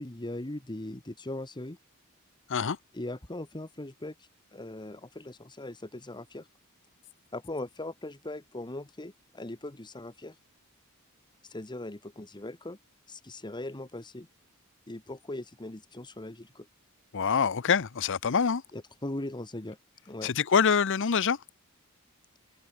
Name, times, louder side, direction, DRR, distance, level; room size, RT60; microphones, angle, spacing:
voice 1, 0.0-1.8 2.9-4.1 4.5-6.5 7.3-10.3 11.5-12.8 13.1-14.3 14.9-16.7 18.7-19.8 20.0-20.3, left 1 dB, 20° left, 1.3 m, -39 dB
voice 2, 17.1-18.6 20.2-21.4, left 6 dB, 60° left, 0.7 m, -25 dB
head